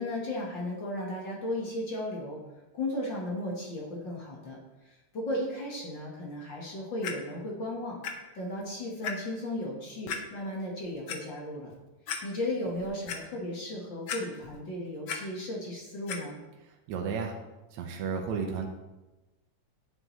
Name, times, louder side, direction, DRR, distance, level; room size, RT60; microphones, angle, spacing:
voice 1, 0.0-2.4 2.7-4.6 4.8-8.0 8.3-11.7 12.2-16.4, left 1 dB, 45° left, -3 dB, 1.9 m, -35 dB
Clock, 7.0-7.1 8.0-8.1 8.6-8.7 9.0-9.1 10.1-10.2 10.8-11.2 11.7-11.8 12.1-12.2 12.7-13.2 14.1-14.6 14.9-15.2 16.1-16.2 16.9-17.0, left 7 dB, 85° left, 1.1 m, -35 dB
voice 2, 16.9-17.3 17.7-18.7, right 6 dB, 75° right, 1 dB, 2.2 m, -32 dB
11.0 x 7.7 x 3.2 m, 1.1 s
omnidirectional pair, 3.3 m